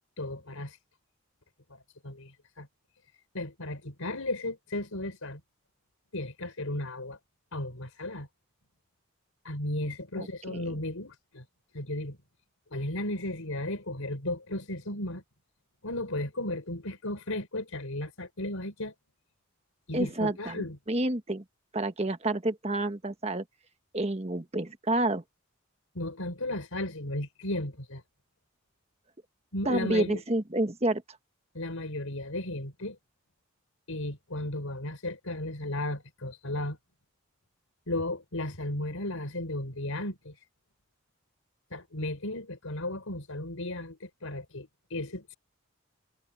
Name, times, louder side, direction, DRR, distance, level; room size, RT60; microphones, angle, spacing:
voice 1, 0.2-0.8 1.7-2.7 3.3-5.4 6.1-7.2 7.5-8.3 9.4-11.4 11.7-12.2 12.7-15.2 15.8-18.9 19.9-20.8 25.9-28.0 29.5-30.2 31.5-33.0 33.9-36.8 37.9-40.4 41.7-45.3, left 1 dB, 80° left, 4.4 m, -35 dB
voice 2, 10.2-10.8 19.9-21.4 21.7-23.4 23.9-25.2 29.6-31.0, right 1 dB, 30° right, 1.3 m, -29 dB
head